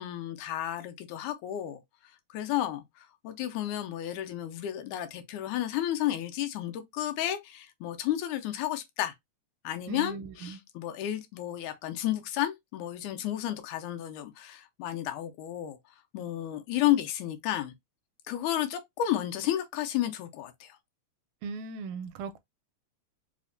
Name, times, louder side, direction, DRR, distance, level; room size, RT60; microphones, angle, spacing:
voice 1, 0.0-1.8 2.3-9.1 9.6-15.8 16.1-17.7 18.3-20.8, left 12 dB, 85° left, 2.0 m, -32 dB
voice 2, 9.9-10.6 21.4-22.4, right 4 dB, 80° right, 1.9 m, -38 dB
4.9 x 2.1 x 2.4 m
omnidirectional pair, 3.4 m